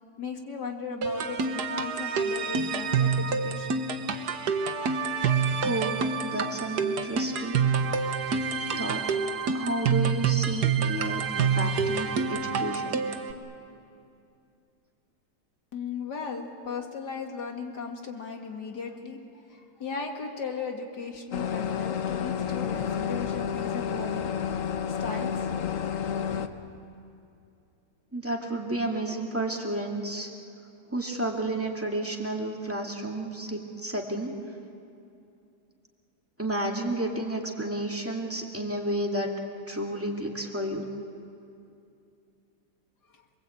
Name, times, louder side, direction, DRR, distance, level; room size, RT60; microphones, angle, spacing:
voice 1, 0.2-3.9 15.7-19.2 19.5-24.3 24.9-25.3, left 5 dB, 90° left, 3 dB, 2.8 m, -37 dB
sound 1, 1.0-13.3, right 5 dB, 75° right, 1.7 m, -27 dB
voice 2, 5.6-7.6 8.8-9.0 9.5-13.0 28.1-30.3 30.9-34.3 36.4-39.3 39.7-40.9, right 1 dB, 10° right, 0 dB, 2.3 m, -31 dB
sound 2, 21.3-26.5, left 7 dB, 55° left, 1.3 m, -30 dB
27.5 x 21.5 x 8.6 m, 2.6 s
omnidirectional pair, 1.7 m